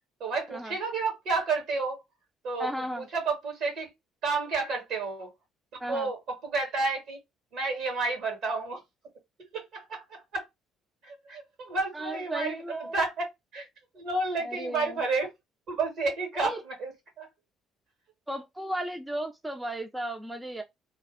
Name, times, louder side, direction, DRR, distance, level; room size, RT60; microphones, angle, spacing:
voice 1, 0.2-2.0 2.4-2.7 3.0-3.9 4.2-5.3 5.8-7.2 7.5-8.8 9.5-10.4 11.0-13.3 13.5-13.7 13.9-15.3 15.7-17.3, right 3 dB, 60° right, 2.3 m, -31 dB
voice 2, 2.6-3.1 5.8-6.1 11.9-13.0 14.4-15.1 16.3-16.6 18.3-20.6, right 1 dB, 10° right, 0.7 m, -35 dB
3.6 x 2.4 x 3.3 m
hypercardioid pair, 50°, 0 cm